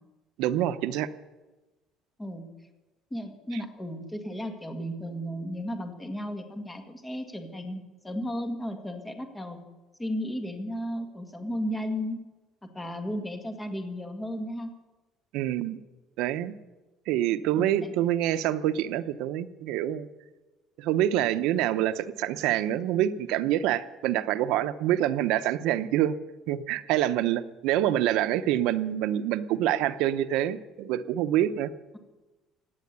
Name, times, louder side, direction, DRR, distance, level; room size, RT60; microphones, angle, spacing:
voice 1, 0.4-1.1 15.3-15.8 16.2-16.5 17.1-20.1 20.8-26.2 26.5-31.7, right 12 dB, 70° right, 12 dB, 0.8 m, -26 dB
voice 2, 3.1-9.6 10.0-12.2 12.7-14.7 17.6-17.9, equal, 10° left, 5 dB, 1.7 m, -34 dB
17.0 x 9.5 x 8.2 m, 1.2 s
cardioid pair, 175°, 0 cm